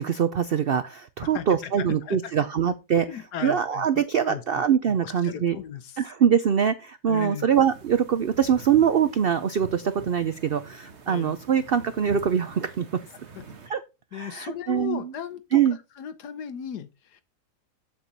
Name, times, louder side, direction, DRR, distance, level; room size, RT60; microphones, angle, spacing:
voice 1, 0.0-3.1 3.4-5.6 6.0-12.8 13.7-13.8 14.1-15.1 15.5-15.8, right 8 dB, 80° right, 0.5 m, -23 dB
voice 2, 1.3-2.3 3.0-4.6 5.0-6.0 7.1-7.5 11.1-11.3 13.3-13.4 14.1-15.6 16.0-17.2, left 8 dB, 85° left, 1.5 m, -36 dB
sound 1, 7.5-13.7, right 4 dB, 45° right, 1.6 m, -45 dB
7.4 x 7.4 x 4.0 m
omnidirectional pair, 1.7 m